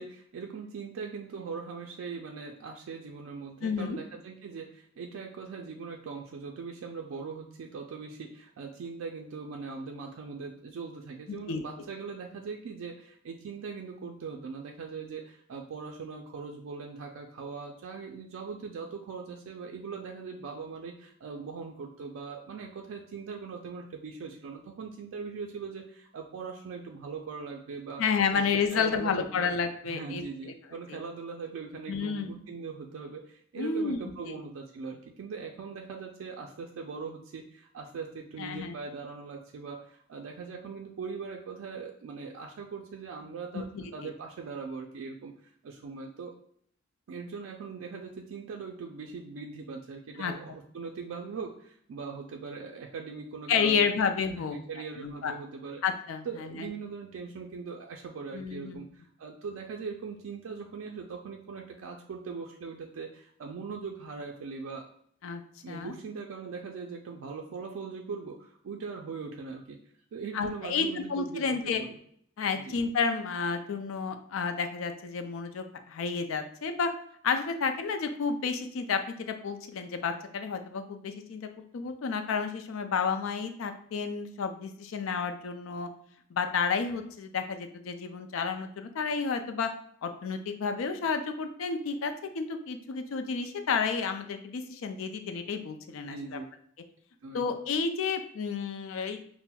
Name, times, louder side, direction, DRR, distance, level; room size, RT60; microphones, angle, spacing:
voice 1, 0.0-28.0 28.3-29.5 29.9-46.3 47.1-54.1 54.4-55.8 56.2-64.9 65.6-69.8 70.1-72.0 72.6-72.8 96.0-96.4 97.2-97.5, right 5 dB, 80° right, 2 dB, 0.3 m, -40 dB
voice 2, 3.6-4.0 11.3-11.6 28.0-30.5 30.9-31.0 31.9-32.4 33.6-34.0 34.3-34.4 38.4-38.7 43.5-44.1 50.2-50.3 53.5-54.6 55.0-55.3 55.8-56.7 58.3-58.9 65.2-65.4 65.7-65.9 70.3-71.8 72.4-76.9 77.2-85.9 86.3-89.7 90.0-96.4 97.3-99.2, left 5 dB, 80° left, 7 dB, 0.4 m, -31 dB
5.6 x 2.0 x 2.2 m, 0.64 s
head